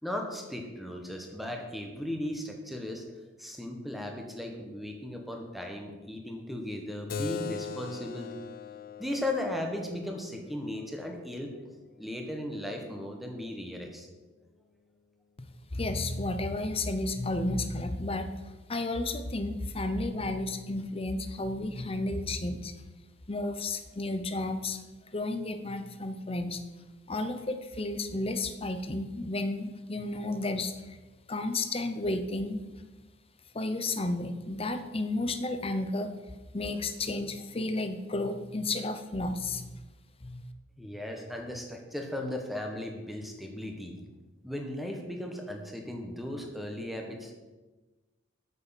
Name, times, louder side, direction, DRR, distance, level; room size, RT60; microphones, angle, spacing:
voice 1, 0.0-3.1 3.4-8.3 9.0-11.5 12.0-14.1 40.8-44.1 44.4-47.4, left 1 dB, ahead, 2 dB, 1.5 m, -36 dB
Keyboard (musical), 7.1-12.2, left 5 dB, 45° left, 0.4 m, -41 dB
voice 2, 15.7-18.3 18.7-22.7 23.3-24.8 25.1-26.6 27.1-31.0 31.3-32.6 33.5-36.1 36.5-39.7 40.2-40.4, left 2 dB, 30° left, 8 dB, 0.8 m, -32 dB
9.3 x 6.7 x 7.2 m, 1.2 s
head